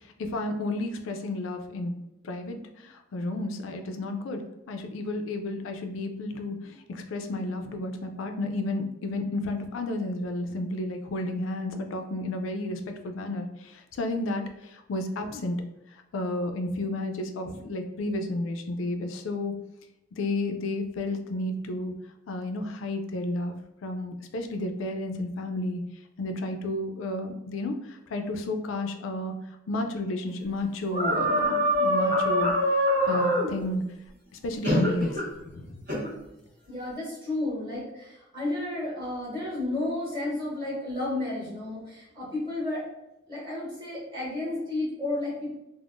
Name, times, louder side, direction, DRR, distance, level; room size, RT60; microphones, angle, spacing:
voice 1, 0.2-1.9 2.2-15.6 16.1-19.5 20.1-21.9 22.3-23.6 23.8-25.8 26.2-29.3 29.7-33.8 34.4-35.8, left 2 dB, 85° left, 5 dB, 0.4 m, -32 dB
sound 1, 30.9-33.5 34.6-35.3 35.9-36.1, equal, 55° right, 1.2 m, -24 dB
voice 2, 36.7-42.8 43.3-45.5, left 2 dB, 25° right, -8 dB, 1.3 m, -32 dB
3.5 x 2.0 x 2.4 m, 0.91 s
head